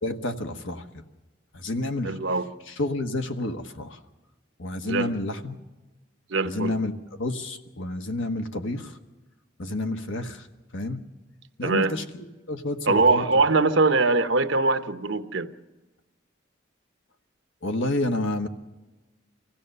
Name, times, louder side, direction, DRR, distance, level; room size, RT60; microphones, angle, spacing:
voice 1, 0.0-1.0 1.5-2.2 2.7-4.0 4.6-5.6 6.4-9.0 9.6-10.5 10.7-11.1 11.6-13.3 17.6-18.5, left 2 dB, 80° left, 1.3 m, -30 dB
voice 2, 2.0-2.5 4.8-5.1 6.3-6.7 11.6-11.9 12.9-15.5, right 3 dB, 70° right, 1.0 m, -22 dB
25.0 x 16.0 x 6.7 m
head